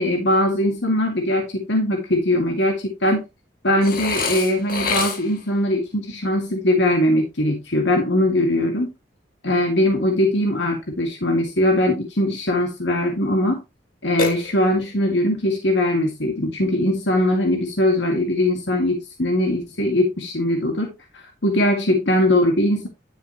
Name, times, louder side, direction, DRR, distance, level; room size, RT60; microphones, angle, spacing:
voice 1, 0.0-3.2 3.6-8.9 9.4-13.6 14.0-20.9 21.4-22.9, left 1 dB, 75° left, 2.1 m, -21 dB
Burping eructation, 3.8-5.5 14.2-15.0, left 3 dB, 50° left, 1.9 m, -26 dB
11.0 x 6.8 x 3.0 m
head